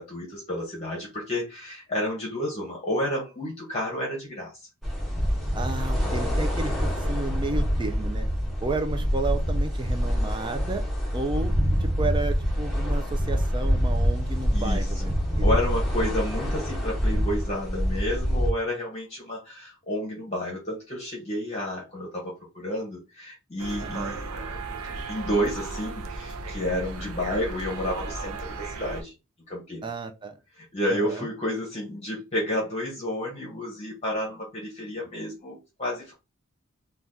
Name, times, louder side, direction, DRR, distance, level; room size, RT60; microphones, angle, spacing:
voice 1, 0.0-4.5 14.5-15.1 15.4-24.7 25.1-29.1 29.5-29.8 30.6-36.1, left 1 dB, 30° left, 0.8 m, -31 dB
sound 1, 4.8-18.5, equal, ahead, 0.8 m, -26 dB
voice 2, 5.5-8.3 8.6-10.8 11.1-11.5 11.8-15.5 23.8-24.1 29.8-30.3 30.9-31.3, right 3 dB, 20° right, 0.4 m, -32 dB
sound 2, 23.6-29.0, right 3 dB, 80° right, 0.5 m, -35 dB
2.7 x 2.3 x 3.5 m
head